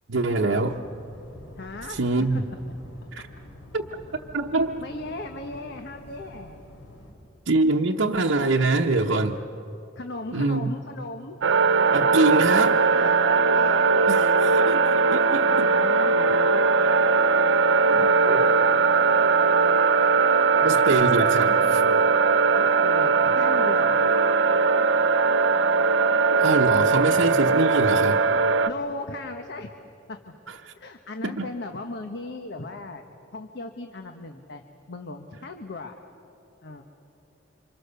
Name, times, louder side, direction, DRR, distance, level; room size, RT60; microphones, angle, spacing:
voice 1, 0.1-0.8 1.9-2.4 3.1-3.2 3.7-3.8 4.3-4.8 7.5-9.4 10.3-10.7 11.9-12.8 14.1-15.7 16.8-16.9 17.8-18.5 20.6-21.8 26.4-28.2 30.5-30.7 31.2-31.5, right 3 dB, 90° right, -1 dB, 1.0 m, -24 dB
sound 1, 0.6-7.1, left 1 dB, 80° left, 5.1 m, -47 dB
voice 2, 1.6-2.0 2.3-2.4 4.8-6.6 9.9-11.4 12.9-14.9 15.5-16.9 22.5-24.1 26.7-27.0 28.6-29.7 30.1-30.2 30.8-33.0 33.3-34.6 34.9-36.0 36.6-36.8, left 2 dB, 60° left, 5 dB, 1.2 m, -37 dB
sound 2, 11.4-28.7, right 4 dB, 70° right, 0.6 m, -20 dB
29.0 x 26.0 x 6.9 m, 2.8 s
head